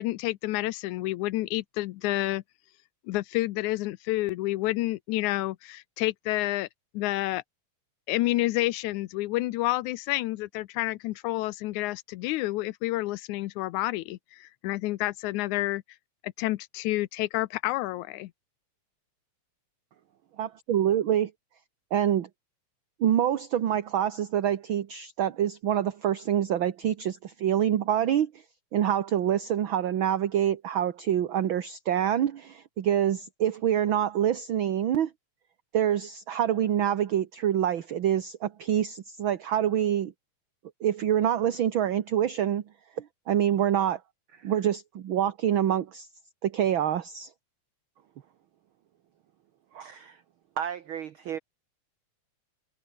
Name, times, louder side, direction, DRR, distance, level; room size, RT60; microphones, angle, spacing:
voice 1, 0.0-2.4 3.1-6.7 6.9-7.4 8.1-15.8 16.2-18.3, left 17 dB, 80° left, 2.1 m, -29 dB
voice 2, 20.4-21.3 21.9-22.3 23.0-28.3 28.7-35.1 35.7-40.1 40.8-42.6 43.0-44.0 44.4-46.1 46.4-47.3, right 10 dB, 55° right, 1.5 m, -26 dB
voice 3, 49.7-50.2 50.6-51.4, right 9 dB, 75° right, 1.2 m, -35 dB
omnidirectional pair, 3.5 m